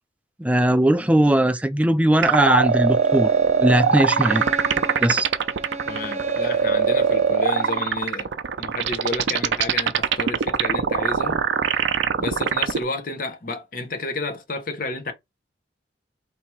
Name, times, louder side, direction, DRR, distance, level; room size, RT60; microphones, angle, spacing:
voice 1, 0.4-3.3 3.6-4.5 5.0-5.3, right 1 dB, 10° right, 0.4 m, -19 dB
sound 1, 2.2-12.8, right 6 dB, 85° right, 0.5 m, -21 dB
Bowed string instrument, 2.6-8.0, right 2 dB, 35° right, 0.8 m, -35 dB
voice 2, 5.9-8.3 8.6-11.4 12.2-15.1, left 3 dB, 50° left, 0.9 m, -31 dB
3.4 x 2.9 x 4.4 m
head